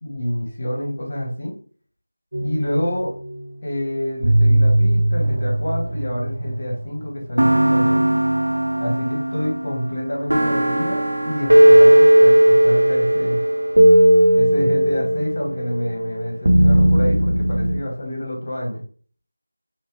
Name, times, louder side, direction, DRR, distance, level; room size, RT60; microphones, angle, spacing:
voice 1, 0.0-1.6 2.4-3.1 3.6-8.2 8.8-13.4 14.3-18.8, equal, 40° left, -1 dB, 1.2 m, -27 dB
sound 1, 2.3-3.5 4.2-6.8 7.4-17.8, right 1 dB, 75° right, 0.6 m, -17 dB
3.2 x 3.2 x 3.1 m, 0.44 s
figure-of-eight pair, 175°, 0 cm